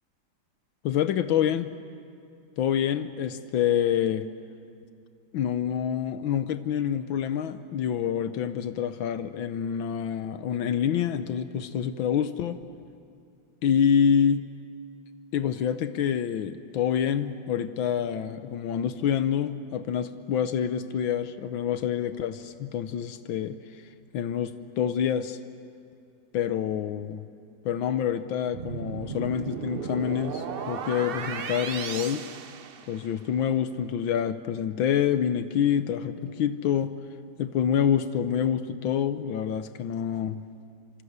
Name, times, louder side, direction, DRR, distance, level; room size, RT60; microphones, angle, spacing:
voice 1, 0.8-1.7 2.6-4.3 5.3-12.6 13.6-14.4 15.3-23.6 24.1-25.4 26.3-27.2 27.6-32.3 32.9-36.9 37.4-40.4, left 8 dB, 80° left, 11 dB, 1.6 m, -27 dB
sound 1, 28.5-33.3, right 6 dB, 60° right, 0.5 m, -35 dB
26.5 x 25.0 x 8.1 m, 2.4 s
omnidirectional pair, 2.1 m